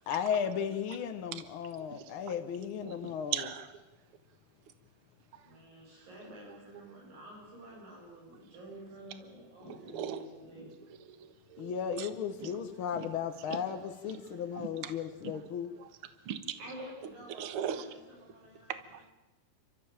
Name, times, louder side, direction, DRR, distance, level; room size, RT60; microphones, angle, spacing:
voice 1, 0.1-3.3 11.6-13.8 14.0-15.7, left 7 dB, 65° left, 7 dB, 1.3 m, -35 dB
voice 2, 1.9-2.2 2.6-3.8 5.3-5.6 5.9-6.1 9.7-10.2 11.1-12.1 12.4-12.5 12.9-13.1 13.4-13.8 14.1-15.4 15.8-16.0 16.2-16.6 17.3-18.0 18.7-19.1, right 9 dB, 50° right, 11 dB, 1.9 m, -41 dB
voice 3, 5.4-10.7 16.6-18.8, right 1 dB, 80° right, -2 dB, 8.8 m, -49 dB
30.0 x 14.0 x 8.9 m, 1.1 s
omnidirectional pair, 3.9 m